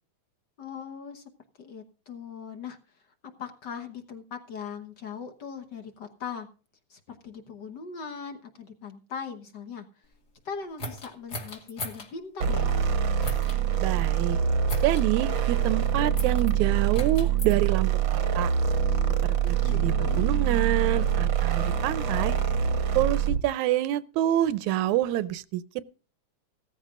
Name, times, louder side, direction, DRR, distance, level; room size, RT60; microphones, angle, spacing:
voice 1, 0.6-1.2 1.6-2.8 3.4-6.5 6.9-9.9 10.4-12.7 19.6-20.4, left 6 dB, 60° left, 1.1 m, -40 dB
sound 1, 10.8-12.1 13.2-13.6 14.7-15.1 16.2-16.5 16.9-17.5 18.4-19.9, left 1 dB, 35° left, 2.3 m, -39 dB
sound 2, 12.4-23.5, right 8 dB, 55° right, 1.4 m, -25 dB
voice 2, 13.8-14.4 14.8-18.5 19.5-22.4 23.0-25.6, right 13 dB, 75° right, 1.9 m, -27 dB
17.0 x 14.0 x 2.5 m
omnidirectional pair, 3.7 m